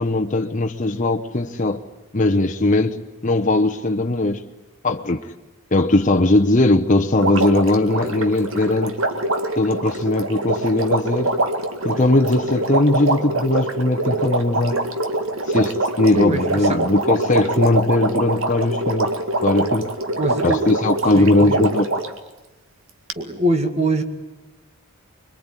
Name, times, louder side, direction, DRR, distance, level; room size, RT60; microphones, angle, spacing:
voice 1, 0.0-1.8 2.1-3.0 3.2-4.4 4.8-5.2 5.7-9.0 9.6-11.4 11.8-14.9 15.5-19.1 19.4-19.9 20.4-21.9, left 2 dB, 35° left, 1.1 m, -19 dB
Water, 7.2-22.2 23.1-23.2, right 2 dB, 70° right, 2.2 m, -24 dB
voice 2, 16.1-16.9 20.2-20.7 21.1-21.6 23.2-24.0, right 1 dB, 30° right, 2.1 m, -23 dB
26.5 x 22.5 x 9.9 m
head